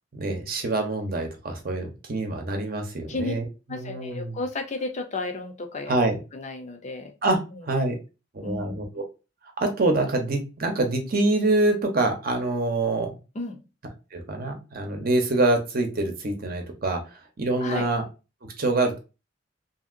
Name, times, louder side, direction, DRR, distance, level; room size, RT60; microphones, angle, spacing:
voice 1, 0.1-3.4 3.7-4.4 5.9-6.1 7.2-7.4 7.7-7.9 8.3-9.0 9.6-13.1 14.1-17.0 17.4-18.0 18.6-19.0, right 2 dB, 50° right, 4 dB, 0.7 m, -25 dB
voice 2, 3.7-5.9 6.3-7.1 7.5-7.6 8.4-8.8 13.3-13.6 17.6-17.9, left 3 dB, 35° left, 5 dB, 0.5 m, -32 dB
2.8 x 2.7 x 2.5 m, 0.30 s
head